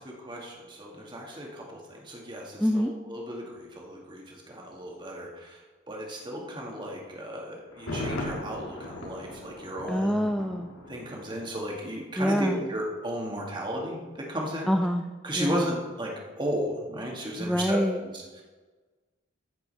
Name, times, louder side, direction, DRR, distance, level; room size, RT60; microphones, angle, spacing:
voice 1, 0.0-10.1 10.9-14.7 15.2-17.8 18.1-18.4, equal, 25° right, -1 dB, 2.0 m, -35 dB
voice 2, 2.6-2.9 9.9-10.7 12.2-12.6 14.7-15.0 15.3-15.8 17.4-18.0, equal, ahead, 4 dB, 0.4 m, -26 dB
Thunder, 7.7-11.6 11.9-12.0, left 1 dB, 80° left, 2.1 m, -38 dB
14.5 x 5.6 x 5.6 m, 1.3 s
head